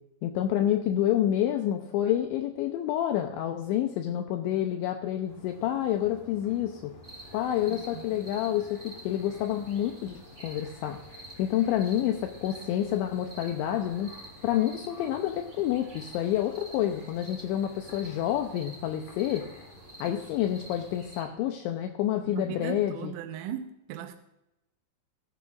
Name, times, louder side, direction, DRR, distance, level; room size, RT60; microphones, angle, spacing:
voice 1, 0.2-6.9 7.3-11.0 11.4-14.1 14.4-19.4 20.0-23.1, left 11 dB, 85° left, 5 dB, 2.7 m, -28 dB
sound 1, 5.3-21.0, left 2 dB, 55° left, 4.4 m, -53 dB
sound 2, 7.0-21.2, right 1 dB, 15° right, 1.9 m, -49 dB
voice 2, 7.7-8.0 22.3-24.1, right 10 dB, 85° right, 6 dB, 3.3 m, -38 dB
16.0 x 12.5 x 2.5 m, 0.90 s
omnidirectional pair, 5.9 m